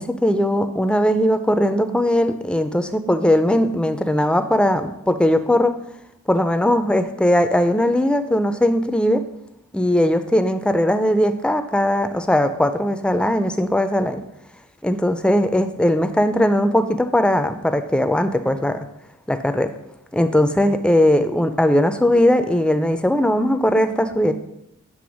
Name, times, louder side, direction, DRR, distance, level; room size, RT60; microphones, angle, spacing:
voice 1, 0.0-5.7 6.3-9.2 9.7-14.2 14.8-18.9 19.3-19.7 20.1-24.3, left 1 dB, 5° left, 9 dB, 0.4 m, -19 dB
7.7 x 3.3 x 6.2 m, 0.83 s
head